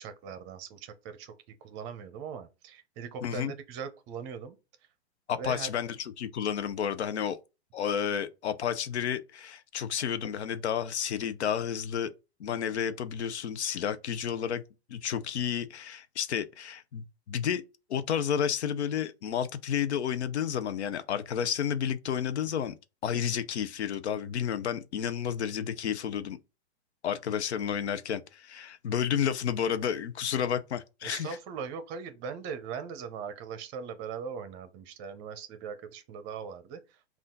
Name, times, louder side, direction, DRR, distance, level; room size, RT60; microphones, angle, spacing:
voice 1, 0.0-1.3 1.6-4.6 5.4-5.7 31.0-37.2, right 6 dB, 35° right, 0.7 m, -40 dB
voice 2, 3.2-3.5 5.3-7.4 7.7-12.1 12.4-14.6 14.9-17.6 17.9-22.8 23.0-26.4 27.0-31.3, left 8 dB, 85° left, 0.6 m, -31 dB
5.5 x 2.5 x 3.8 m
hypercardioid pair, 120°, 33 cm